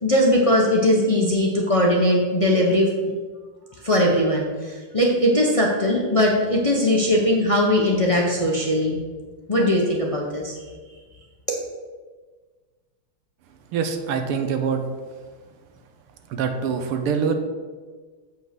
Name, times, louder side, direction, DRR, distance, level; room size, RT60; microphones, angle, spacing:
voice 1, 0.0-2.9 3.8-9.0 9.5-10.5, left 1 dB, 45° left, -2 dB, 0.4 m, -20 dB
voice 2, 13.7-14.8 16.3-17.3, right 6 dB, 85° right, 6 dB, 1.8 m, -24 dB
7.8 x 5.8 x 6.0 m, 1.4 s
omnidirectional pair, 2.4 m